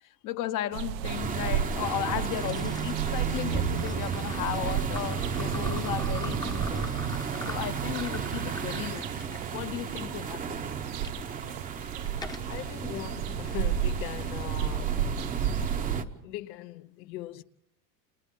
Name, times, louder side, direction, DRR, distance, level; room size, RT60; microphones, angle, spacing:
voice 1, 0.0-6.9 7.5-10.4, left 12 dB, 40° left, 0.9 m, -35 dB
sound 1, 0.7-16.0, right 9 dB, 85° right, 1.1 m, -33 dB
sound 2, 1.0-16.0, right 5 dB, 15° right, 0.8 m, -35 dB
sound 3, 1.9-11.1 11.7-12.6, left 2 dB, 10° left, 0.8 m, -44 dB
voice 2, 12.5-15.1 16.2-17.4, left 15 dB, 85° left, 1.1 m, -40 dB
30.0 x 28.0 x 3.7 m
cardioid pair, 155°, 50 cm